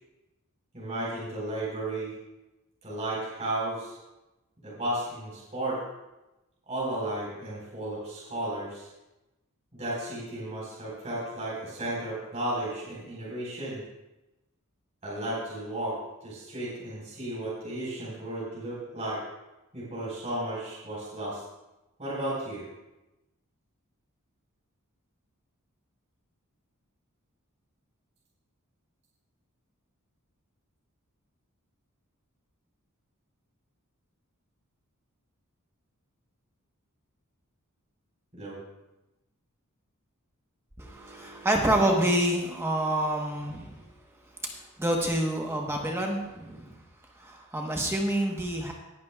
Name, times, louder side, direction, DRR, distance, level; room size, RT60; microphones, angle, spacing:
voice 1, 0.7-2.1 2.8-4.0 4.6-5.8 6.7-8.9 9.8-13.8 15.0-19.2 19.7-21.4 22.0-22.6 38.3-38.6, right 1 dB, 30° right, -7 dB, 4.5 m, -34 dB
voice 2, 40.8-43.8 44.8-46.7 47.2-48.7, right 1 dB, 10° right, 0 dB, 1.1 m, -27 dB
19.0 x 11.0 x 2.4 m, 0.99 s
head